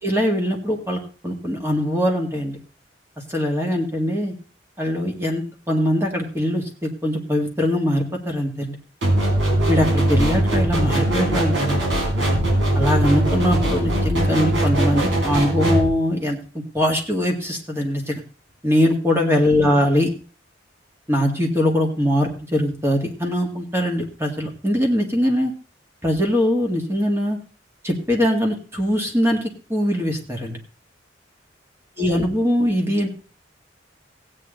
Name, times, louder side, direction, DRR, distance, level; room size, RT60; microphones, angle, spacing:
voice 1, 0.0-2.6 3.3-4.3 4.8-8.8 9.7-11.8 12.7-16.4 16.7-18.2 18.6-20.1 21.1-25.5 26.0-27.4 27.8-30.6 32.0-33.1, equal, 15° right, 1 dB, 2.0 m, -22 dB
sound 1, 9.0-15.9, right 1 dB, 75° right, 4.3 m, -20 dB
16.0 x 8.8 x 3.9 m, 0.37 s
head